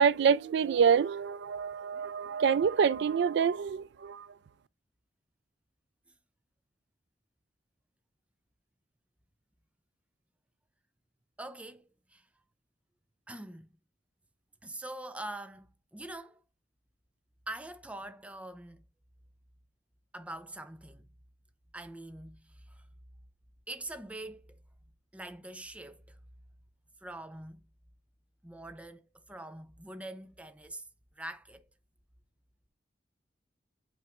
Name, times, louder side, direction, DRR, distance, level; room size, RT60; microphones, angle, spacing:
voice 1, 0.0-4.3, right 6 dB, 65° right, 0.3 m, -26 dB
voice 2, 11.4-12.3 13.3-13.7 14.6-16.4 17.5-18.8 20.1-21.1 21.7-22.9 23.7-24.6 25.1-26.2 27.0-27.6 28.4-30.9 31.2-31.7, right 1 dB, 5° right, 0.5 m, -44 dB
8.6 x 4.6 x 2.4 m
head